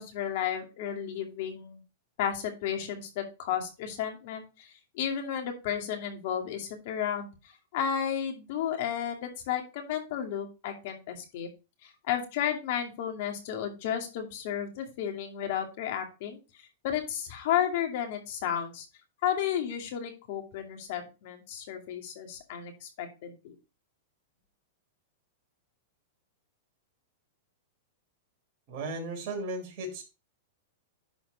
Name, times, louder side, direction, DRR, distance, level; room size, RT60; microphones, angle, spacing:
voice 1, 0.0-1.8 2.2-7.3 7.7-11.5 11.8-18.9 19.2-23.5, left 9 dB, 60° left, 3 dB, 2.5 m, -33 dB
voice 2, 28.7-30.0, right 2 dB, 50° right, 1 dB, 4.1 m, -35 dB
10.5 x 4.4 x 4.1 m, 0.30 s
hypercardioid pair, 120°, 0 cm